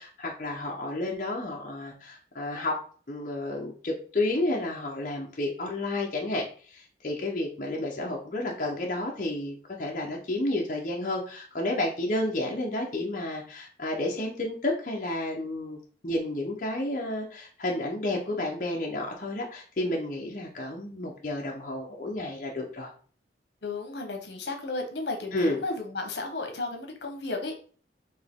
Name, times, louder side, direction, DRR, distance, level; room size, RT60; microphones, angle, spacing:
voice 1, 0.0-2.8 3.1-15.8 16.0-22.9 25.3-25.6, left 1 dB, 45° left, -1 dB, 0.8 m, -31 dB
voice 2, 23.6-27.5, left 3 dB, 80° left, 3 dB, 1.0 m, -33 dB
4.5 x 2.9 x 3.6 m, 0.43 s
head